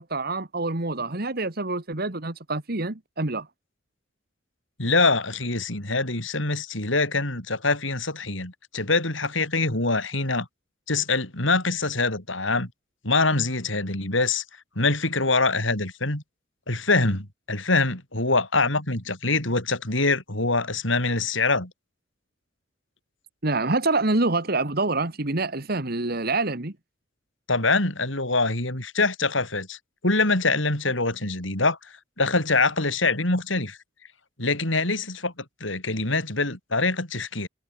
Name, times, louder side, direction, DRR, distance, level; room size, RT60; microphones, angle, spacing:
voice 1, 0.0-3.5 23.4-26.7, right 2 dB, 50° right, 2.0 m, -26 dB
voice 2, 4.8-10.5 10.9-12.7 13.0-14.4 14.7-16.2 16.7-21.7 27.5-29.8 30.0-33.8 34.4-37.5, left 3 dB, 70° left, 6.5 m, -24 dB
head